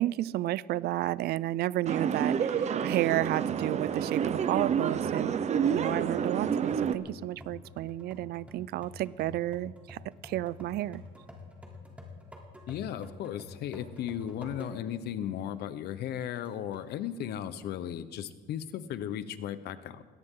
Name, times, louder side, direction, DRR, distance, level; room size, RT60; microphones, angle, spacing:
voice 1, 0.0-5.4 5.7-11.0, right 15 dB, 70° right, 0.4 m, -32 dB
sound 1, 1.9-7.0, right 7 dB, 40° right, 0.8 m, -29 dB
sound 2, 3.1-15.0 15.5-15.6 16.4-16.9, left 2 dB, 10° right, 3.3 m, -49 dB
voice 2, 12.7-20.0, left 10 dB, 75° left, 1.0 m, -36 dB
21.0 x 18.0 x 3.8 m
cardioid pair, 110°, 17 cm